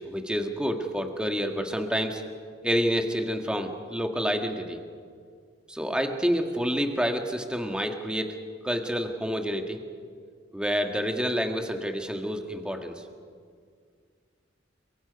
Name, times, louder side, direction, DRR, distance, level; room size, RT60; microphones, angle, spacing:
voice 1, 0.0-2.2 2.6-4.8 5.7-8.3 8.6-9.8 10.5-13.0, equal, 5° right, 4 dB, 1.6 m, -28 dB
29.5 x 23.5 x 5.3 m, 2.1 s
head